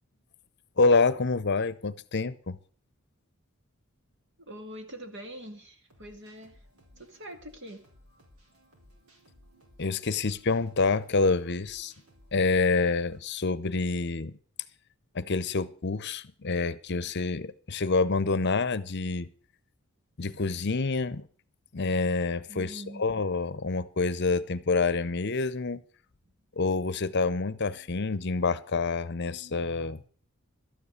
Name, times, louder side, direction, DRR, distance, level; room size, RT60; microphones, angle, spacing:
voice 1, 0.8-2.6 9.8-11.9 12.3-14.4 15.1-19.3 20.2-21.3 21.7-25.8 26.6-30.0, left 3 dB, 50° left, 0.7 m, -27 dB
voice 2, 4.4-6.6 7.0-7.8 22.5-23.0, equal, 55° right, 2.3 m, -44 dB
sound 1, 5.9-13.2, equal, 90° right, 4.6 m, -59 dB
13.0 x 9.8 x 6.5 m
head